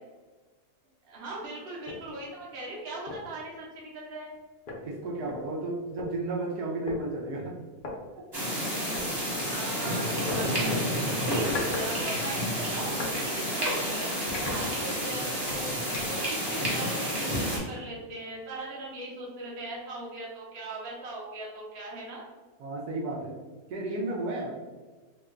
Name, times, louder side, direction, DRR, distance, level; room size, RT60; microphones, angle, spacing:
voice 1, 1.0-4.3 9.5-15.7 16.0-22.2, right 2 dB, 45° right, -4 dB, 1.0 m, -39 dB
sound 1, 1.8-2.1 2.5-2.6 3.1-3.3 4.3-4.4 4.7-6.1 6.9-7.0 7.8-7.9 8.9-9.1 10.3-10.5 11.2-11.9 12.2-13.2 13.6-13.8 14.3-15.1 15.5-16.3, left 3 dB, 65° left, 0.5 m, -38 dB
voice 2, 4.8-7.5 22.6-23.3 23.7-24.6, right 2 dB, 75° right, -3 dB, 1.1 m, -33 dB
sound 2, 8.3-17.6, equal, 20° right, 0.6 m, -30 dB
3.0 x 2.2 x 3.6 m, 1.3 s
omnidirectional pair, 1.7 m